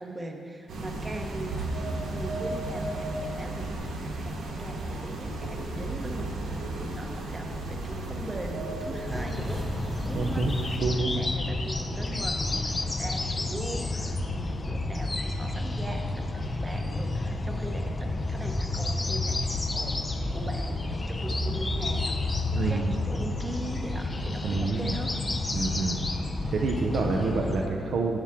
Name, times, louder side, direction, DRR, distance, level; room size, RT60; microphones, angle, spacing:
voice 1, 0.0-3.7 4.0-10.5 10.8-25.2, right 1 dB, 15° right, 3 dB, 0.9 m, -40 dB
sound 1, 0.7-10.8, right 2 dB, 70° right, 1.3 m, -34 dB
sound 2, 9.1-27.7, left 2 dB, 20° left, 0.5 m, -30 dB
voice 2, 10.0-10.5 10.8-11.2 22.5-22.9 24.4-25.0 25.5-26.0 26.5-28.2, right 4 dB, 55° right, 1 dB, 0.6 m, -28 dB
11.0 x 7.3 x 3.6 m, 2.4 s
cardioid pair, 120°, 0 cm